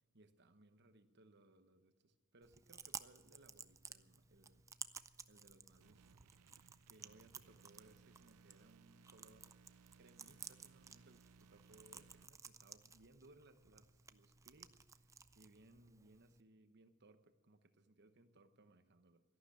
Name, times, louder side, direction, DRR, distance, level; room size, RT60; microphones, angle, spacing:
voice 1, 0.1-4.7 5.3-9.6 10.0-19.2, right 2 dB, 50° right, 10 dB, 1.0 m, -66 dB
Chewing mastication, 2.4-16.4, right 6 dB, 15° right, 0.4 m, -56 dB
sound 1, 5.8-12.3, right 6 dB, 90° right, 0.4 m, -67 dB
13.0 x 11.5 x 8.4 m, 1.3 s
head